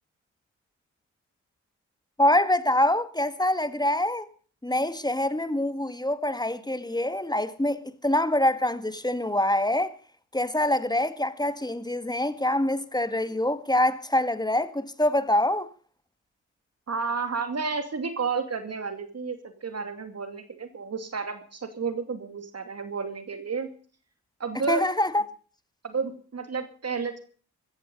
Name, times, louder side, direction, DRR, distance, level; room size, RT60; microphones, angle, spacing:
voice 1, 2.2-4.3 4.6-9.9 10.3-15.7 24.7-25.2, left 1 dB, 10° left, 1.8 m, -25 dB
voice 2, 16.9-23.7 24.4-24.9 25.8-27.2, right 5 dB, 50° right, 2.5 m, -31 dB
15.5 x 14.0 x 5.3 m
supercardioid pair, 45°, 33 cm